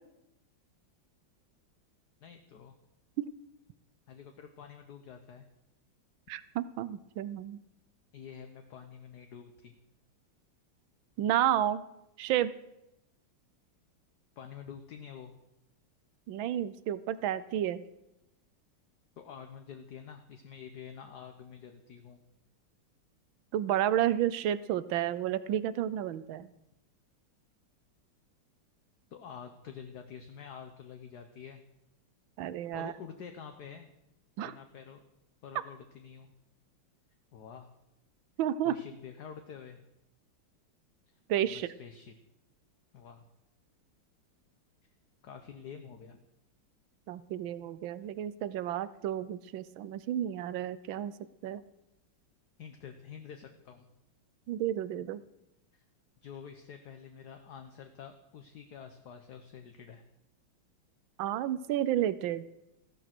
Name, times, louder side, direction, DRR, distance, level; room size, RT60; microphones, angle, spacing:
voice 1, 2.2-2.8 4.1-5.5 8.1-9.8 14.4-15.3 19.2-22.2 29.1-31.6 32.6-33.9 34.4-35.0 35.4-36.3 37.3-37.7 38.6-39.8 41.1-41.2 41.5-42.1 42.9-43.2 45.2-46.2 52.6-53.9 55.7-55.8 56.2-60.0, left 7 dB, 55° left, 6 dB, 1.4 m, -48 dB
voice 2, 6.3-7.6 11.2-11.8 12.2-12.5 16.3-17.8 23.5-26.5 32.4-32.9 34.4-34.5 38.4-38.7 41.3-41.7 47.1-51.1 51.4-51.6 54.5-55.2 61.2-62.4, right 11 dB, 75° right, 16 dB, 1.4 m, -31 dB
15.5 x 12.5 x 6.0 m, 0.88 s
omnidirectional pair, 2.3 m